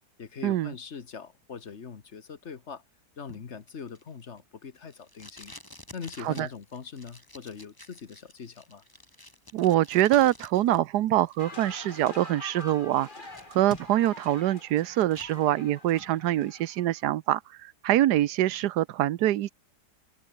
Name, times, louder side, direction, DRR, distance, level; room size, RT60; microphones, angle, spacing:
voice 1, 0.2-2.8 3.2-5.5 5.9-8.8, left 6 dB, 45° left, 1.5 m, -42 dB
Packing tape duct tape, 3.3-10.8 11.1-12.1 12.6-12.7 13.0-14.2 14.5-15.3 15.7-16.1, left 1 dB, 10° left, 3.1 m, -49 dB
voice 2, 9.5-13.1 13.5-19.5, right 13 dB, 75° right, 1.3 m, -24 dB
sound 1, 11.4-17.0, left 2 dB, 30° left, 3.0 m, -46 dB
omnidirectional pair, 1.8 m